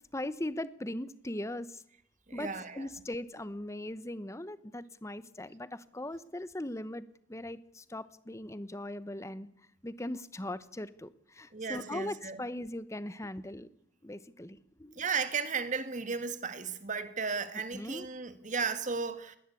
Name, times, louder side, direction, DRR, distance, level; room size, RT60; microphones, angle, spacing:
voice 1, 0.1-1.8 2.3-7.0 7.3-9.5 9.8-13.7 14.0-14.9 17.7-18.1, left 1 dB, 15° left, 1.0 m, -39 dB
voice 2, 2.3-2.9 11.5-12.4 15.0-19.4, right 5 dB, 45° right, 1.9 m, -35 dB
20.5 x 19.0 x 8.5 m
head